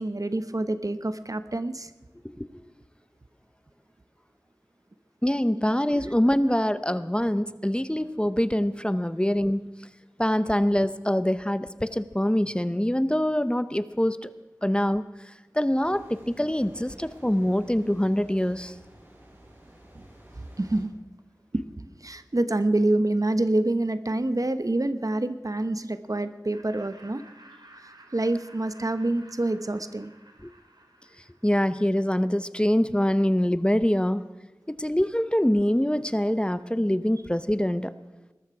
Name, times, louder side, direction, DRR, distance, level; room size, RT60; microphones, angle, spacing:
voice 1, 0.0-1.9 5.9-6.0 19.9-20.0 20.3-20.9 21.5-21.6 22.0-27.2 27.8-30.1, right 2 dB, 55° right, 11 dB, 0.9 m, -27 dB
voice 2, 5.2-9.7 10.2-14.3 14.6-15.0 15.5-18.7 30.4-30.5 31.4-34.2 34.7-37.9, equal, 15° left, 13 dB, 0.7 m, -24 dB
sound 1, 15.8-20.9, right 1 dB, 35° right, 6.9 m, -51 dB
Laughter, 26.5-31.8, right 1 dB, 85° right, 2.4 m, -53 dB
20.5 x 13.0 x 4.8 m, 1.1 s
wide cardioid pair, 40°, 7 cm